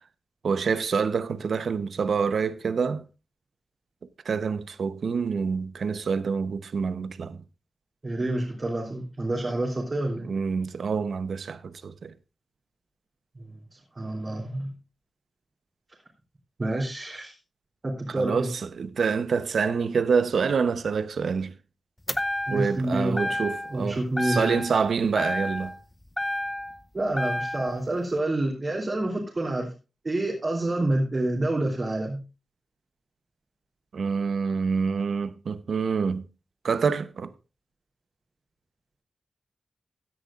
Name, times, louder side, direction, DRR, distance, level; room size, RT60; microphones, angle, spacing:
voice 1, 0.4-3.0 4.2-7.4 10.2-12.1 18.1-21.5 22.5-25.7 33.9-36.3 36.6-37.3, right 5 dB, 75° right, 0.8 m, -27 dB
voice 2, 8.0-10.3 13.4-14.7 16.6-17.3 17.8-18.5 22.5-23.3 23.7-24.6 26.9-29.7 30.0-32.2, right 1 dB, 35° right, 3.3 m, -28 dB
sound 1, 22.1-22.8 23.2-23.8 24.2-24.9 25.2-26.8 27.2-27.8, left 1 dB, 15° left, 0.6 m, -30 dB
16.5 x 10.5 x 2.4 m
wide cardioid pair, 100°, 0 cm